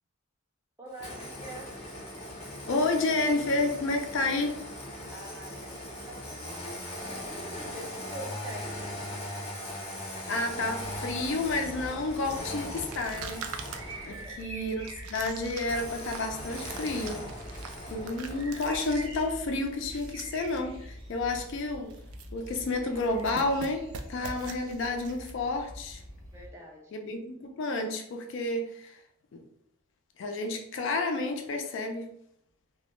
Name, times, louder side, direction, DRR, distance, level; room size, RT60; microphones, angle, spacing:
voice 1, 0.8-1.7 5.1-6.8 7.1-8.8 14.1-14.5 19.9-20.0 26.3-26.9, equal, 10° right, 0.4 m, -45 dB
Engine starting, 0.9-14.4 15.6-18.8, left 1 dB, 30° left, 0.7 m, -40 dB
voice 2, 2.7-4.6 10.3-14.8 15.1-17.3 17.9-21.9 22.3-26.0 26.9-29.0 29.3-29.4 30.2-32.1, left 2 dB, 55° left, 0.3 m, -30 dB
sound 1, 10.8-26.5, right 1 dB, 70° right, 0.8 m, -45 dB
sound 2, 12.3-20.6 20.9-21.0 21.3-21.6 21.9-22.7 23.0-25.3, right 6 dB, 90° right, 0.3 m, -44 dB
2.1 x 2.0 x 3.0 m
head